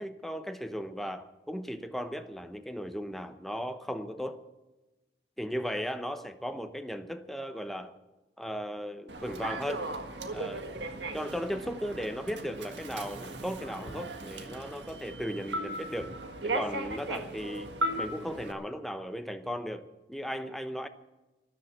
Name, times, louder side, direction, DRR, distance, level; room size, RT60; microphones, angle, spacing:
voice 1, 0.0-4.4 5.4-7.9 8.4-9.9 10.3-10.7 11.1-16.2 16.4-20.9, equal, ahead, 8 dB, 0.8 m, -36 dB
Human voice / Subway metro underground, 9.1-18.5, right 1 dB, 80° right, 1.8 m, -37 dB
13.5 x 11.5 x 8.3 m, 1.1 s
head